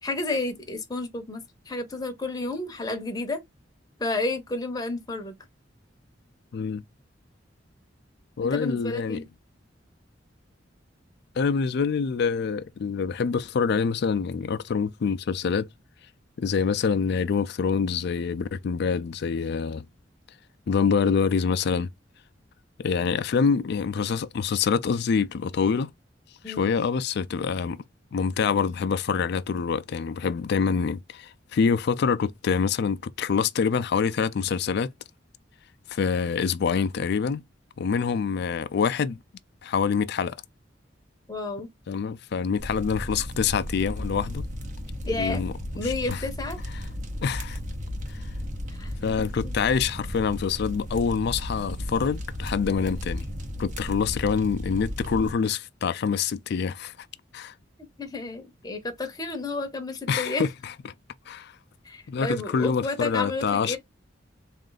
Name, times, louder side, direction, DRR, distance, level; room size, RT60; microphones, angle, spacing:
voice 1, 0.0-3.4 4.0-5.3 8.4-9.2 26.4-26.7 41.3-41.7 45.1-45.4 45.8-46.6 48.7-48.9 49.4-49.5 58.0-60.5 61.8-63.8, left 2 dB, 20° left, 0.8 m, -31 dB
voice 2, 8.4-9.2 11.4-15.7 16.4-19.9 20.7-21.9 22.8-25.9 26.5-27.8 28.1-34.9 35.9-37.4 37.8-39.2 39.6-40.4 41.9-44.4 45.2-45.5 45.8-46.2 47.2-47.6 48.1-48.2 49.0-53.3 53.6-56.9 57.3-57.5 60.1-60.7 61.3-61.5 62.1-63.8, left 6 dB, 60° left, 0.4 m, -26 dB
sound 1, 42.6-55.3, left 1 dB, 45° right, 0.8 m, -34 dB
3.7 x 2.5 x 3.8 m
head